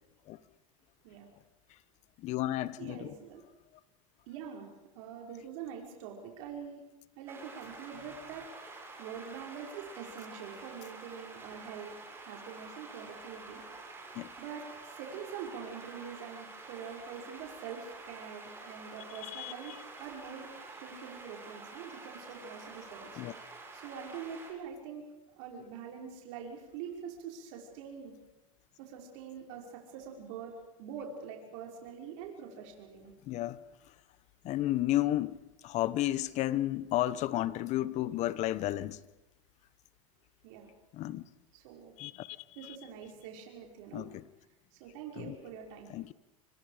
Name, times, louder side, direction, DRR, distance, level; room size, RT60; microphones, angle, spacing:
voice 1, 2.2-3.1 14.1-14.3 19.3-19.5 23.2-23.3 33.3-33.6 34.4-35.4 35.6-39.0 40.9-41.2 42.0-42.4 43.9-44.2 45.2-45.3 45.9-46.1, left 14 dB, 45° left, 1.1 m, -32 dB
voice 2, 2.8-3.4 4.3-4.7 4.9-6.8 7.2-11.9 12.2-13.6 14.4-20.5 20.7-23.2 23.7-25.0 25.3-28.1 28.8-33.1 40.4-40.7 41.5-41.9 42.6-44.1 44.7-45.9, right 7 dB, 65° right, 5.8 m, -45 dB
sound 1, 7.3-24.5, right 3 dB, 15° right, 7.8 m, -48 dB
27.0 x 25.5 x 5.2 m
supercardioid pair, 120°, 17 cm